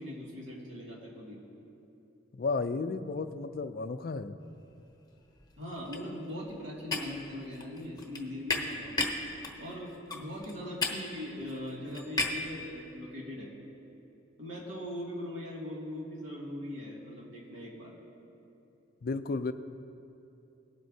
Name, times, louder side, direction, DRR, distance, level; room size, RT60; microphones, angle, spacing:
voice 1, 0.0-1.4 5.6-9.1 9.6-13.5 14.4-17.9, left 1 dB, 70° right, -4 dB, 2.4 m, -40 dB
voice 2, 2.4-4.4 19.0-19.5, left 3 dB, 50° left, 10 dB, 0.4 m, -33 dB
sound 1, 4.7-5.0 5.3-12.5, left 2 dB, 20° left, 0.9 m, -36 dB
19.0 x 7.7 x 2.8 m, 2.8 s
head